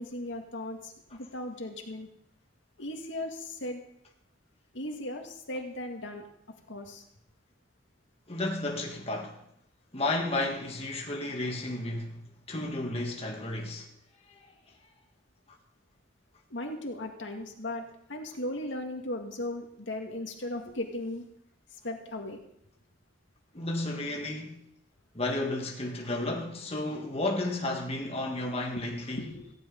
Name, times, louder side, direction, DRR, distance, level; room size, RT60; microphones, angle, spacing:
voice 1, 0.0-2.1 2.8-3.8 4.7-6.3 6.7-7.0 16.5-17.8 18.1-21.2 21.7-22.4 28.8-28.9 29.1-29.5, left 1 dB, 80° left, 2.1 m, -37 dB
voice 2, 8.3-9.4 9.9-12.2 12.5-13.9 14.4-14.5 23.5-24.6 25.1-29.3, left 2 dB, 35° left, 1.8 m, -32 dB
15.5 x 6.2 x 9.3 m
head